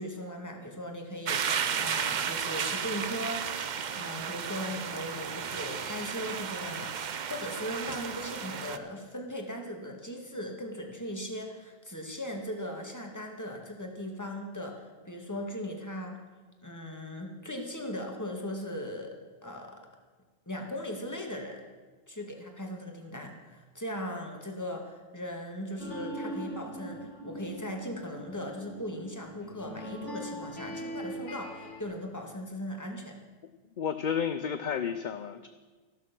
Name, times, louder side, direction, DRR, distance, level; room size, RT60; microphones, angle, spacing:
voice 1, 0.0-16.2 16.6-19.2 19.4-19.8 20.5-21.6 22.1-33.2, equal, 15° left, 2 dB, 2.0 m, -38 dB
sound 1, 1.3-8.8, right 7 dB, 50° right, 0.7 m, -33 dB
sound 2, 25.8-31.8, equal, 90° left, 2.2 m, -41 dB
voice 2, 33.8-35.5, left 7 dB, 50° left, 10 dB, 0.6 m, -31 dB
13.5 x 12.5 x 6.1 m, 1.4 s
omnidirectional pair, 1.2 m